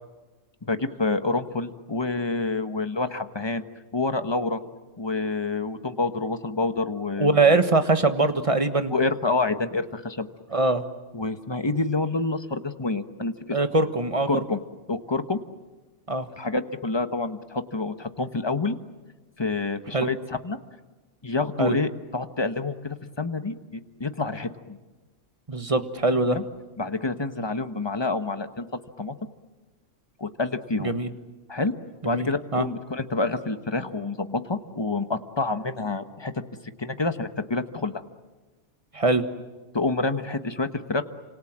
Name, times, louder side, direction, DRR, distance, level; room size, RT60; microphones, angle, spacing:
voice 1, 0.6-3.6 3.9-4.6 5.0-7.6 8.9-10.3 11.1-13.6 14.3-14.6 14.9-15.4 16.3-18.7 19.4-20.6 21.2-24.8 26.3-26.4 26.8-28.7 29.0-29.1 30.2-30.9 31.5-31.7 32.0-36.3 36.8-37.9 39.7-41.0, left 3 dB, 20° left, 9 dB, 1.2 m, -28 dB
voice 2, 7.2-8.9 10.5-10.8 13.5-14.3 16.1-16.3 19.9-20.1 21.6-21.8 25.5-26.4 30.8-31.1 32.0-32.3 32.5-32.7 38.9-39.2, right 3 dB, 25° right, 8 dB, 1.5 m, -22 dB
29.5 x 26.5 x 7.5 m, 1.2 s
omnidirectional pair, 1.3 m